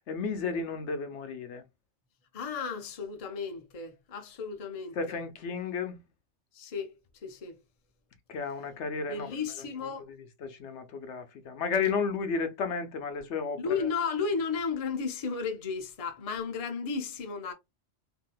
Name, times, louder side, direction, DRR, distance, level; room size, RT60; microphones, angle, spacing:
voice 1, 0.1-1.6 4.9-6.0 8.3-9.4 9.8-13.9, left 5 dB, 75° left, 1.0 m, -33 dB
voice 2, 2.3-5.2 6.5-7.6 9.0-10.0 13.6-17.5, left 5 dB, 40° left, 0.7 m, -34 dB
3.6 x 2.7 x 2.2 m
omnidirectional pair, 1.2 m